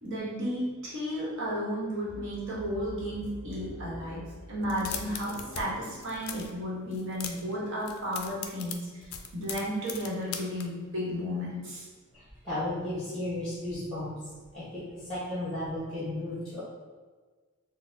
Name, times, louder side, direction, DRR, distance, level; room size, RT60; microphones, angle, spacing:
voice 1, 0.0-11.9, equal, 55° right, -6 dB, 1.0 m, -33 dB
sound 1, 2.1-7.7, equal, 35° left, 0.7 m, -46 dB
sound 2, 4.6-5.6 5.9-6.5 6.9-7.5 7.8-10.6, left 7 dB, 70° left, 0.3 m, -39 dB
voice 2, 12.1-14.1 14.5-16.6, left 1 dB, 5° left, -10 dB, 1.0 m, -34 dB
3.9 x 2.0 x 2.6 m, 1.4 s
head